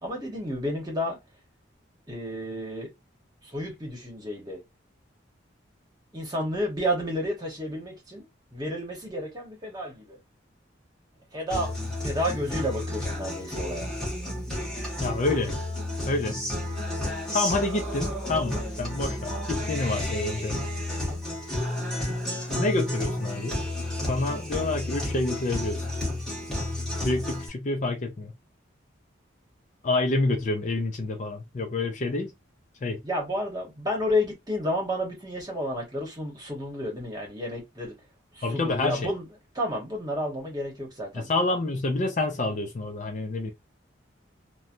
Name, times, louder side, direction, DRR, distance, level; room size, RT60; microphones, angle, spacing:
voice 1, 0.0-1.2 2.1-2.9 3.4-4.6 6.1-10.2 11.3-13.9 33.0-38.0 38.3-39.3 39.5-41.3, equal, 20° right, 1.0 m, -31 dB
Guitar, 11.5-27.5, left 1 dB, 5° left, 1.1 m, -31 dB
voice 2, 15.0-15.6 16.1-16.4 17.3-20.6 22.5-23.6 24.1-25.9 27.0-28.3 29.8-32.3 32.8-33.0 38.4-39.1 41.1-43.5, left 2 dB, 40° left, 0.4 m, -28 dB
3.1 x 2.1 x 2.5 m
head